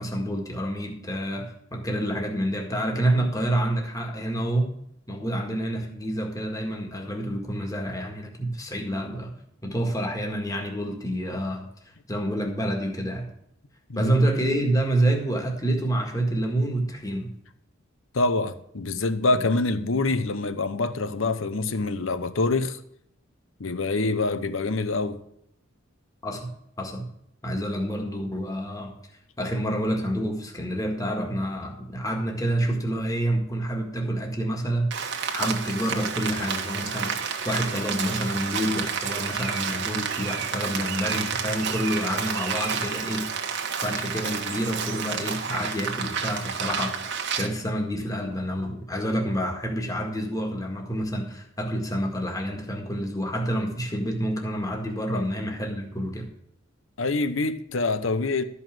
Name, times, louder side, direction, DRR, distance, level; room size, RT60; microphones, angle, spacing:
voice 1, 0.0-4.7 5.1-9.3 9.6-11.6 12.1-13.3 14.0-17.3 26.2-26.5 26.8-27.1 27.4-28.9 29.4-43.3 43.8-47.1 47.4-56.3, right 1 dB, 15° left, 1.8 m, -28 dB
voice 2, 13.9-14.2 18.1-22.8 23.6-25.2 55.1-55.3 57.0-58.4, left 3 dB, 70° left, 0.9 m, -25 dB
Rain, 34.9-47.5, right 6 dB, 60° right, 1.3 m, -30 dB
12.5 x 5.6 x 7.4 m
head